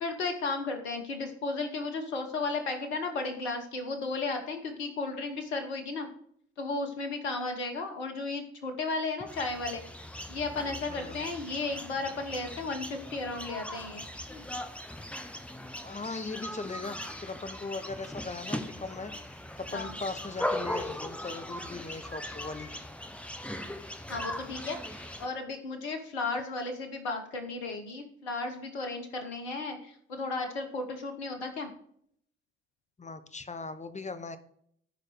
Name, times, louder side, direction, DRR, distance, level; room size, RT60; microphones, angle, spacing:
voice 1, 0.0-6.1 6.6-9.8 10.3-14.4 19.7-19.9 24.1-31.7, left 3 dB, 85° left, 5 dB, 1.1 m, -34 dB
sound 1, 9.3-25.3, left 1 dB, 5° left, 1.3 m, -39 dB
voice 2, 10.9-11.2 15.8-22.7 33.0-34.4, left 3 dB, 20° left, 10 dB, 1.3 m, -39 dB
14.0 x 4.9 x 4.9 m, 0.65 s
hypercardioid pair, 45°, 33 cm